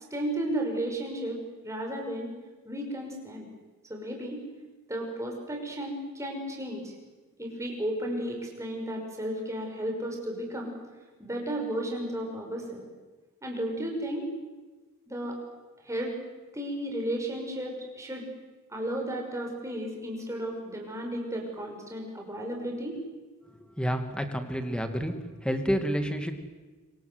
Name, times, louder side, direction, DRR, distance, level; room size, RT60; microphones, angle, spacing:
voice 1, 0.1-2.3 2.6-3.5 3.9-4.4 4.9-6.9 7.4-10.7 11.2-12.9 13.4-14.3 15.1-15.4 15.8-16.2 16.5-18.3 18.7-23.0, right 1 dB, 15° right, 1 dB, 6.0 m, -33 dB
voice 2, 23.8-25.1 25.4-26.3, equal, 5° left, 7 dB, 2.2 m, -29 dB
26.5 x 25.0 x 8.0 m, 1.3 s
head